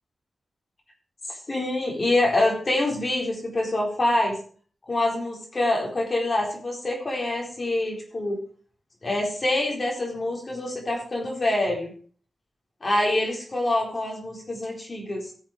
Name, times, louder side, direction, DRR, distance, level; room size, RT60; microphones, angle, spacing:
voice 1, 1.3-4.4 4.9-8.4 9.0-11.9 12.8-15.3, left 1 dB, 40° left, -1 dB, 4.1 m, -25 dB
15.0 x 7.3 x 4.9 m, 0.43 s
cardioid pair, 70°, 0 cm